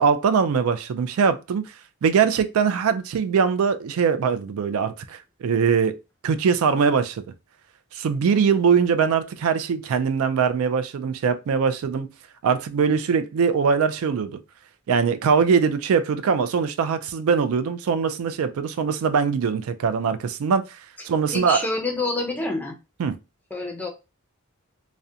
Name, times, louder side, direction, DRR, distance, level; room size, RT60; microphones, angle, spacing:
voice 1, 0.0-1.6 2.0-6.0 6.2-7.2 7.9-12.1 12.4-14.4 14.9-20.8 21.0-21.7 23.0-23.1, right 6 dB, 75° right, 0.3 m, -22 dB
voice 2, 21.3-22.8 23.5-23.9, left 2 dB, 10° left, 0.4 m, -27 dB
2.4 x 2.1 x 2.6 m
head